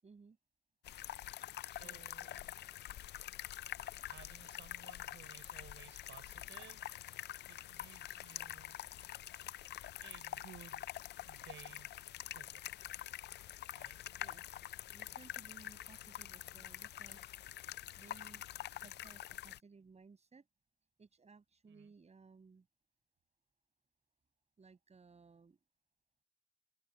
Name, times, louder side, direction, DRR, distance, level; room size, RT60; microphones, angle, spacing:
voice 1, 0.0-0.4 1.8-2.3 14.2-14.7 14.9-17.6 17.9-18.4 18.8-20.5 21.0-22.7 24.6-25.6, right 4 dB, 35° right, 6.6 m, -60 dB
sound 1, 0.8-19.6, left 13 dB, 60° left, 0.4 m, -46 dB
voice 2, 1.7-2.5 4.0-8.8 10.0-10.9 11.2-11.9 12.3-12.6 12.9-13.0 13.7-14.0 21.7-21.9, right 10 dB, 70° right, 6.6 m, -58 dB
cardioid pair, 90°, 20 cm